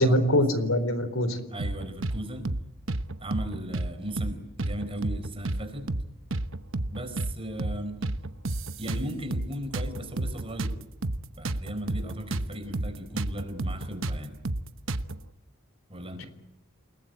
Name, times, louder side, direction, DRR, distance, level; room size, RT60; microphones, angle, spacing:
voice 1, 0.0-1.4 16.2-16.3, equal, 70° left, 12 dB, 3.9 m, -23 dB
voice 2, 1.5-2.5 3.2-5.9 6.9-8.0 8.8-10.8 11.4-14.4 15.9-16.3, equal, 25° right, 8 dB, 4.4 m, -36 dB
sound 1, 1.6-2.2 2.4-2.6 2.9-3.9 4.2-4.3 4.6-5.6 5.9-6.0 6.3-7.3 7.6-7.8 8.0-9.5 9.7-12.5 12.7-12.9 13.2-15.2, right 2 dB, 60° right, 1.1 m, -30 dB
29.5 x 20.0 x 9.3 m, 0.87 s
head